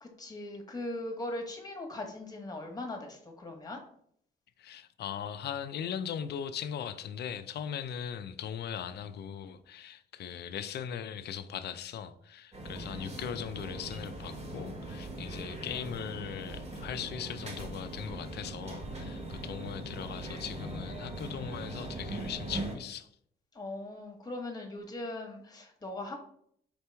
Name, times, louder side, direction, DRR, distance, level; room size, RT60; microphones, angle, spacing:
voice 1, 0.0-3.8 23.5-26.1, left 2 dB, 20° left, 1.2 m, -39 dB
voice 2, 4.6-23.1, left 8 dB, 55° left, 0.4 m, -39 dB
sound 1, 12.5-22.8, right 1 dB, 35° right, 1.3 m, -40 dB
4.4 x 3.0 x 3.3 m
cardioid pair, 90°, 20 cm